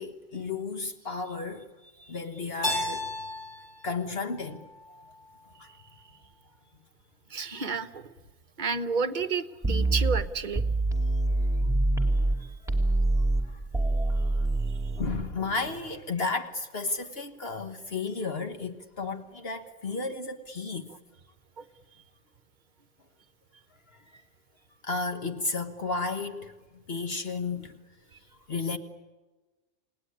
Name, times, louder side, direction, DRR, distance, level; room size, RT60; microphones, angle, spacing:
voice 1, 0.0-1.7 2.1-3.1 3.8-4.7 5.6-5.7 12.6-12.7 13.5-13.6 15.0-20.9 24.1-24.2 24.8-26.5 26.9-27.7 28.5-28.8, left 4 dB, 55° left, 1.5 m, -33 dB
Keyboard (musical), 2.6-5.4, left 1 dB, 80° left, 7.2 m, -35 dB
voice 2, 7.3-8.1 8.6-10.6 21.6-21.7, right 4 dB, 40° right, 1.1 m, -31 dB
sound 1, 9.6-12.4 12.7-15.1, right 2 dB, 5° right, 2.8 m, -25 dB
28.5 x 18.5 x 9.9 m
omnidirectional pair, 1.2 m